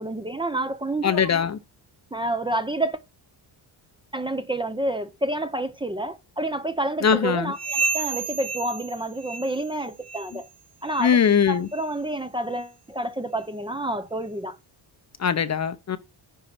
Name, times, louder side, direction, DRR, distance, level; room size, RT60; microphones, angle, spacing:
voice 1, 0.0-1.3 2.1-3.0 4.1-10.5 10.8-11.2 11.5-14.6, right 1 dB, 10° right, 0.7 m, -29 dB
voice 2, 1.0-1.6 7.0-7.5 11.0-11.7 15.2-16.0, left 7 dB, 40° left, 0.8 m, -21 dB
sound 1, 7.5-9.8 10.0-10.4 10.9-11.1 11.7-11.9 12.6-12.7 13.4-13.5, right 4 dB, 55° right, 1.4 m, -31 dB
10.5 x 4.8 x 5.9 m
cardioid pair, 120°, 44 cm